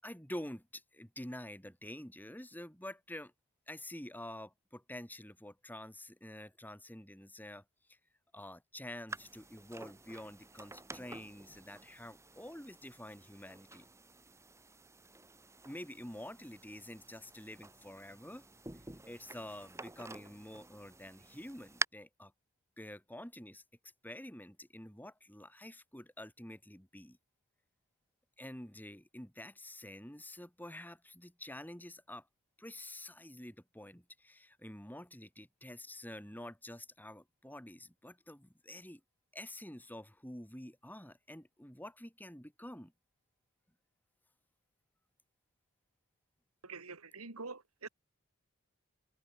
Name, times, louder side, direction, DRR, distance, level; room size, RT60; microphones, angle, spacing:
voice 1, 0.0-3.3 3.7-7.6 7.9-8.0 8.3-13.9 15.6-18.5 19.0-22.3 22.8-23.6 24.0-27.2 28.4-32.3 32.6-39.0 39.3-42.9, left 1 dB, 10° left, 6.9 m, -48 dB
sound 1, 9.1-21.9, right 3 dB, 15° right, 1.5 m, -47 dB
voice 2, 46.6-47.9, right 4 dB, 85° right, 2.5 m, -46 dB
head